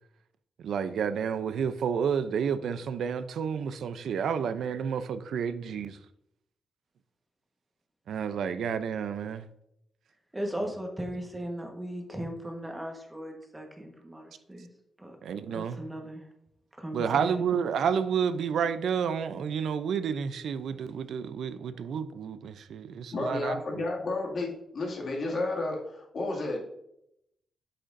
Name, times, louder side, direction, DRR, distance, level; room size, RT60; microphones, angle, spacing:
voice 1, 0.6-6.0 8.1-9.4 15.2-15.8 16.9-23.6, right 7 dB, 80° right, 0.5 m, -30 dB
voice 2, 10.3-14.7 15.0-15.2 15.5-16.3 16.8-17.5, equal, 10° right, 1.2 m, -37 dB
voice 3, 23.1-26.6, left 2 dB, 50° left, 2.1 m, -32 dB
8.4 x 7.7 x 2.6 m
wide cardioid pair, 135°, 0 cm